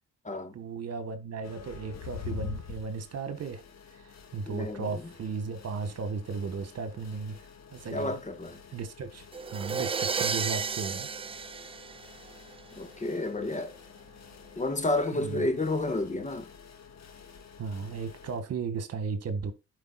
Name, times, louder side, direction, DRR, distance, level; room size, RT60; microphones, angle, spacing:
voice 1, 0.5-3.6 3.9-7.4 7.7-8.2 8.7-11.1 15.1-15.5 17.6-19.5, right 5 dB, 55° right, 1.6 m, -35 dB
sound 1, 1.4-18.4, left 7 dB, 60° left, 1.7 m, -47 dB
voice 2, 4.5-4.9 7.9-8.6 12.8-13.7 14.6-16.5, left 2 dB, 25° left, 1.4 m, -30 dB
sound 2, 9.3-12.6, right 5 dB, 20° right, 0.4 m, -33 dB
12.0 x 5.0 x 2.4 m
cardioid pair, 90°, 30 cm